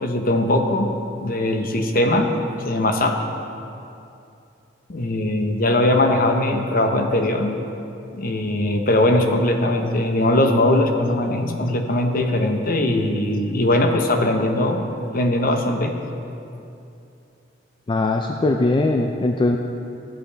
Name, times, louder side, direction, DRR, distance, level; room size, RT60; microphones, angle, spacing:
voice 1, 0.0-0.9 1.2-3.2 4.9-7.6 8.1-14.8 15.1-16.0, left 1 dB, 55° left, 5 dB, 0.8 m, -20 dB
voice 2, 17.9-19.6, left 2 dB, 25° left, 3 dB, 0.4 m, -20 dB
14.0 x 7.6 x 3.3 m, 2.7 s
head